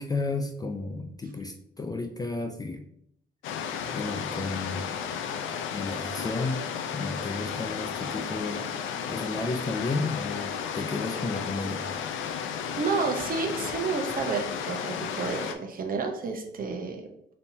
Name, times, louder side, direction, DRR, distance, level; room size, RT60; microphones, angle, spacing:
voice 1, 0.0-2.8 3.9-5.0 5.7-6.6 6.9-8.7 9.1-11.8, left 3 dB, 20° left, 6 dB, 0.3 m, -32 dB
sound 1, 3.4-15.5, left 7 dB, 75° left, 0.5 m, -33 dB
voice 2, 12.8-17.0, right 4 dB, 45° right, 4 dB, 0.8 m, -30 dB
5.3 x 2.8 x 2.7 m, 0.74 s
cardioid pair, 90°, 20 cm